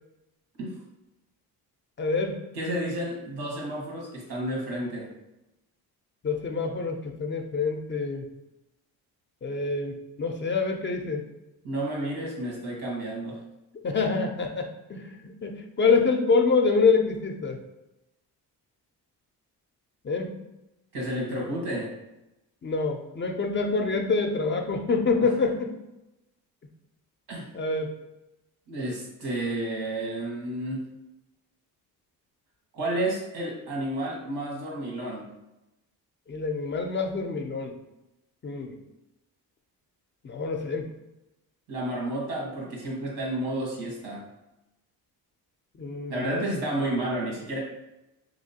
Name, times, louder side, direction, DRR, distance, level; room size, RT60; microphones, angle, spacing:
voice 1, 2.0-2.4 6.2-8.3 9.4-11.3 13.8-17.6 20.0-20.3 22.6-25.7 27.5-27.9 36.3-37.7 38.4-38.7 40.2-40.9 45.8-46.4, left 4 dB, 30° left, 3 dB, 0.4 m, -26 dB
voice 2, 2.5-5.1 11.6-13.4 20.9-21.9 27.3-27.5 28.7-30.9 32.7-35.3 41.7-44.2 46.1-47.6, right 1 dB, 85° right, -2 dB, 1.4 m, -31 dB
3.1 x 2.9 x 2.8 m, 0.95 s
cardioid pair, 80°, 39 cm